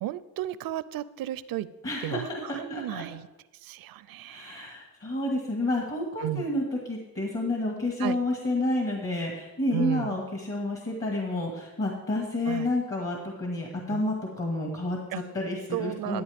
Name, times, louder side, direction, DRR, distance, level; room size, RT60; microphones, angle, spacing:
voice 1, 0.0-1.7 2.0-3.3 3.6-4.7 6.2-6.5 8.0-8.2 9.7-10.2 12.5-12.7 13.9-14.0 15.1-15.2 15.7-16.2, right 13 dB, 80° right, 17 dB, 0.5 m, -34 dB
voice 2, 1.8-3.0 4.3-16.2, left 2 dB, 35° left, 0 dB, 1.8 m, -30 dB
12.5 x 9.0 x 3.5 m, 1.0 s
cardioid pair, 105°, 35 cm